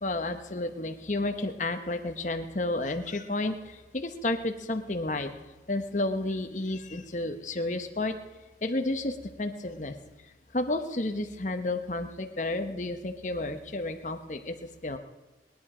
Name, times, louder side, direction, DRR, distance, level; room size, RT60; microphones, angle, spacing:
voice 1, 0.0-5.3 5.7-8.1 8.6-9.9 10.5-14.5 14.8-15.0, left 2 dB, 45° left, 7 dB, 1.0 m, -31 dB
20.5 x 10.5 x 5.0 m, 1.2 s
head